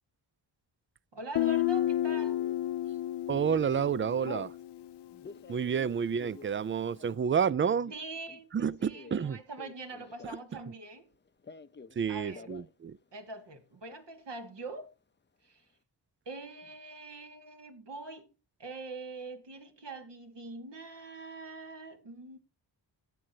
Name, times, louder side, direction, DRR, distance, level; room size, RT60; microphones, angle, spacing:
voice 1, 1.1-2.5 7.9-11.1 12.1-12.5 13.1-14.9 15.4-15.6 16.3-18.3 18.6-22.4, right 3 dB, 70° right, 2.2 m, -43 dB
Guitar, 1.3-5.0, left 13 dB, 65° left, 0.5 m, -31 dB
Telephone, 2.0-2.5 3.1-3.4 3.7-4.5 5.1-10.6 10.9-12.0 12.3-12.7 13.0-13.1 13.4-14.0, left 5 dB, 25° left, 0.6 m, -49 dB
voice 2, 3.3-4.5 5.5-7.9 8.5-9.4 12.0-13.0, right 7 dB, 30° right, 0.4 m, -29 dB
15.5 x 7.5 x 2.8 m
cardioid pair, 75°, 44 cm